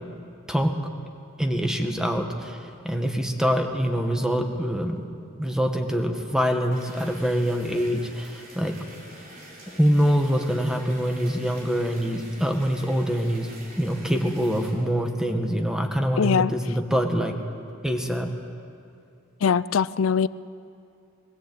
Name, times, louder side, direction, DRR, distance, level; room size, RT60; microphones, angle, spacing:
voice 1, 1.4-5.1 5.4-8.7 9.8-13.5 13.8-17.3 17.8-18.3, equal, 5° right, 3 dB, 1.7 m, -24 dB
sound 1, 6.7-14.7, right 1 dB, 45° right, 4.4 m, -46 dB
voice 2, 16.2-16.5 19.4-20.3, left 6 dB, 75° left, 18 dB, 0.4 m, -21 dB
21.5 x 16.0 x 8.7 m, 2.5 s
head